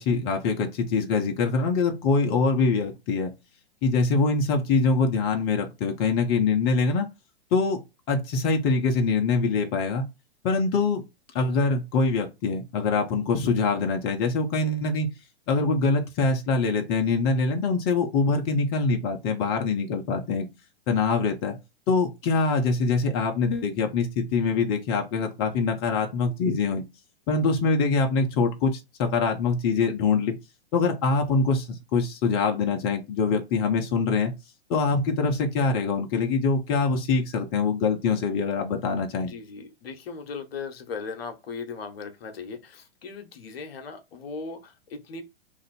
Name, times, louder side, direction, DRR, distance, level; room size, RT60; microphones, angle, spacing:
voice 1, 0.0-3.3 3.8-7.1 7.5-7.8 8.1-10.0 10.4-11.0 11.3-15.1 15.5-20.5 20.9-21.6 21.9-26.8 27.3-30.4 30.7-34.3 34.7-39.3, left 4 dB, 35° left, 0.8 m, -24 dB
voice 2, 39.3-45.2, left 5 dB, 65° left, 1.0 m, -38 dB
2.9 x 2.5 x 4.1 m
hypercardioid pair, 110°, 32 cm